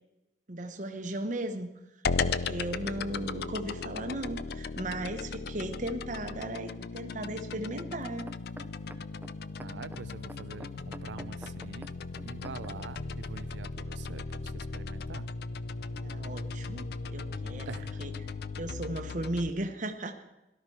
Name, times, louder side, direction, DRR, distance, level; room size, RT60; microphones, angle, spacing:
voice 1, 0.5-1.7 2.2-8.3 16.0-18.1 18.6-20.1, right 1 dB, 45° right, 4 dB, 1.1 m, -36 dB
sound 1, 2.0-19.5, left 4 dB, 60° left, 0.5 m, -37 dB
sound 2, 8.0-12.9 13.6-13.7, right 1 dB, 10° right, 0.5 m, -48 dB
voice 2, 9.6-11.9 12.2-15.3 17.7-18.0, right 5 dB, 80° right, 14 dB, 0.5 m, -45 dB
17.5 x 12.5 x 4.7 m, 0.96 s
head